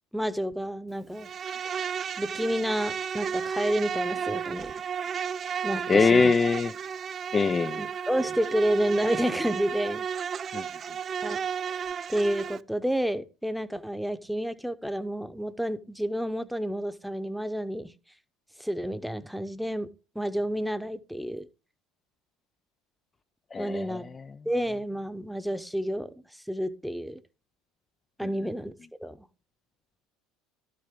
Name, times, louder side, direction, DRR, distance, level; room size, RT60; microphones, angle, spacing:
voice 1, 0.1-1.3 2.2-4.9 5.6-6.3 7.8-10.0 11.2-11.4 12.1-17.9 18.6-19.9 20.1-21.5 23.6-24.1 24.4-26.1 26.5-27.2 28.2-28.7 29.0-29.3, equal, ahead, 0.9 m, -30 dB
Insect, 1.2-12.6, right 7 dB, 40° right, 0.4 m, -33 dB
voice 2, 5.9-6.7 7.3-7.8 10.5-10.6 23.5-24.0, left 4 dB, 25° left, 0.4 m, -22 dB
12.0 x 7.6 x 3.7 m
hypercardioid pair, 75°, 0 cm